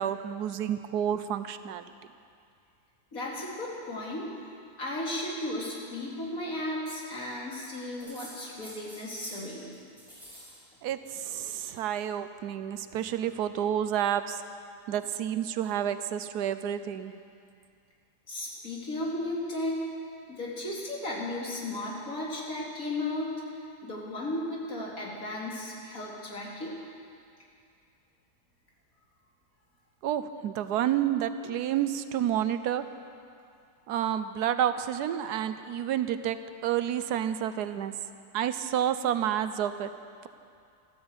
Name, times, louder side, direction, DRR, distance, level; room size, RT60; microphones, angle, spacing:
voice 1, 0.0-1.9 10.8-14.4 14.9-17.1 30.0-32.9 33.9-37.9 38.3-39.9, right 10 dB, 80° right, 11 dB, 1.2 m, -29 dB
voice 2, 3.1-4.3 4.8-9.6 18.3-19.8 20.3-23.4 23.8-26.8, left 1 dB, 55° left, -3 dB, 3.1 m, -35 dB
sound 1, 8.0-9.5 9.7-10.6 10.8-11.7 12.7-13.4, right 1 dB, ahead, 5.1 m, -49 dB
13.5 x 13.0 x 7.9 m, 2.4 s
omnidirectional pair, 1.7 m